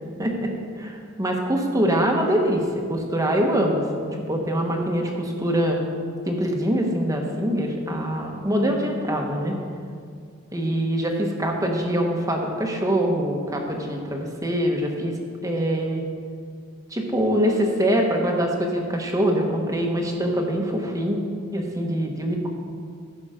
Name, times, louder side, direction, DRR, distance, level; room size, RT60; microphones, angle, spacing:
voice 1, 0.2-0.5 0.8-2.6 2.9-5.8 6.3-9.6 10.5-15.2 15.4-16.0 16.9-21.2 21.5-22.5, equal, 15° right, 1 dB, 1.3 m, -24 dB
14.5 x 6.2 x 5.1 m, 2.2 s
head